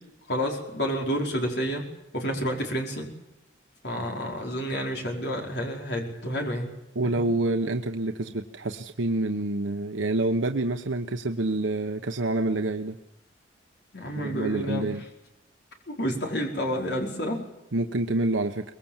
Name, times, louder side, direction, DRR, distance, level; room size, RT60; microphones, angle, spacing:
voice 1, 0.3-1.9 2.1-3.1 3.8-6.7 7.0-7.2 13.9-14.9 15.9-17.4, equal, 60° left, 1 dB, 4.8 m, -29 dB
voice 2, 6.9-13.0 14.1-15.0 17.7-18.6, right 2 dB, 90° right, 5 dB, 1.0 m, -27 dB
24.0 x 21.0 x 7.3 m, 0.93 s
head